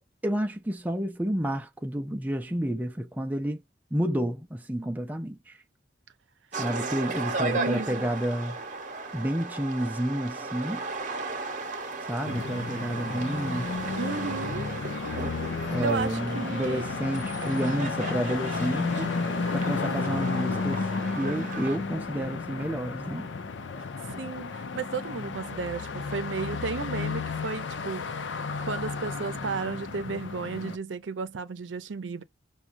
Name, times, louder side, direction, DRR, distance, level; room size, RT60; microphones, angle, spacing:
voice 1, 0.2-3.6 3.9-5.6 6.6-8.6 9.1-10.8 12.0-13.7 15.7-20.9 21.2-23.3, equal, 10° right, 0.4 m, -30 dB
sound 1, 6.5-21.8, right 3 dB, 45° right, 0.9 m, -36 dB
voice 2, 7.4-8.1 14.0-14.7 15.8-16.8 24.1-28.1 28.6-32.2, right 4 dB, 85° right, 0.6 m, -33 dB
sound 2, 12.3-30.8, left 4 dB, 80° left, 0.6 m, -33 dB
6.1 x 2.3 x 2.5 m
head